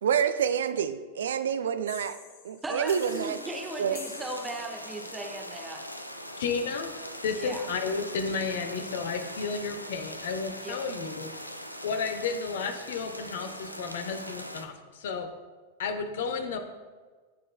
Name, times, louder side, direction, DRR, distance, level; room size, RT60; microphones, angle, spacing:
voice 1, 0.0-2.2 2.4-3.4 3.8-4.0, right 8 dB, 65° right, 11 dB, 0.4 m, -28 dB
sound 1, 1.9-5.1, left 5 dB, 40° left, 1.4 m, -48 dB
voice 2, 2.6-5.9 7.3-7.7 10.6-10.8, right 2 dB, 10° right, 2 dB, 1.0 m, -37 dB
sound 2, 2.8-14.7, equal, 90° left, 0.5 m, -41 dB
voice 3, 6.4-11.3 11.8-15.3 15.8-16.6, left 5 dB, 55° left, 8 dB, 0.8 m, -32 dB
15.5 x 5.3 x 2.2 m, 1.4 s
figure-of-eight pair, 90°, 0 cm